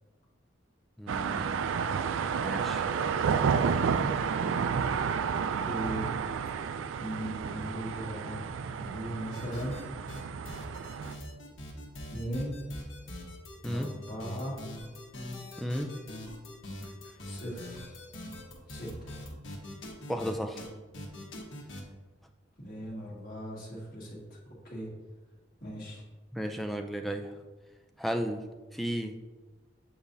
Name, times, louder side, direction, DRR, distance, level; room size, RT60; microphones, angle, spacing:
voice 1, 1.0-1.6 2.4-2.9 13.6-13.9 15.6-15.9 20.1-20.7 26.3-27.3 28.0-28.4 28.7-29.1, equal, ahead, 4 dB, 0.4 m, -34 dB
sound 1, 1.1-11.1, right 6 dB, 90° right, 0.3 m, -31 dB
voice 2, 5.5-6.2 7.0-8.5 8.8-9.8 12.1-12.6 13.7-14.6 17.2-18.0 18.7-19.1 22.6-24.4 24.6-24.9 25.6-26.0, equal, 50° left, -6 dB, 1.9 m, -38 dB
sound 2, 9.3-9.8 10.1-20.3 20.6-20.7 20.9-21.8, left 1 dB, 85° left, 1.3 m, -42 dB
7.2 x 4.8 x 2.7 m, 1.3 s
head